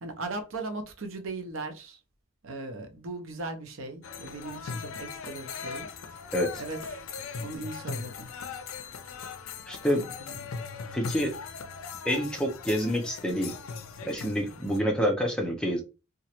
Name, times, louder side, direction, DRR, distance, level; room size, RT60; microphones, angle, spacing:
voice 1, 0.0-2.0 2.4-6.2 6.6-6.8 7.4-8.3 9.9-10.6, right 3 dB, 70° right, 0.7 m, -38 dB
sound 1, 4.0-14.8, left 5 dB, 75° left, 0.4 m, -39 dB
voice 2, 6.3-6.6 9.7-10.0 10.9-11.3 12.0-13.5 14.0-15.8, equal, 5° left, 0.5 m, -27 dB
3.0 x 2.4 x 2.8 m
head